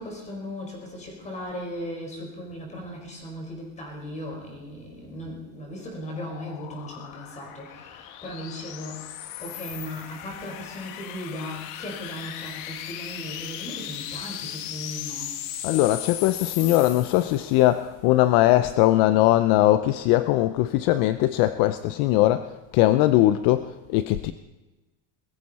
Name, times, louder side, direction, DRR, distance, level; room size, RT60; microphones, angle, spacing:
voice 1, 0.0-15.4, equal, 15° left, 1 dB, 4.7 m, -37 dB
sound 1, 5.1-17.7, left 12 dB, 75° left, 1.4 m, -38 dB
voice 2, 15.6-24.3, left 15 dB, 55° left, 12 dB, 0.7 m, -20 dB
21.5 x 14.5 x 4.2 m, 1.2 s
cardioid pair, 175°, 41 cm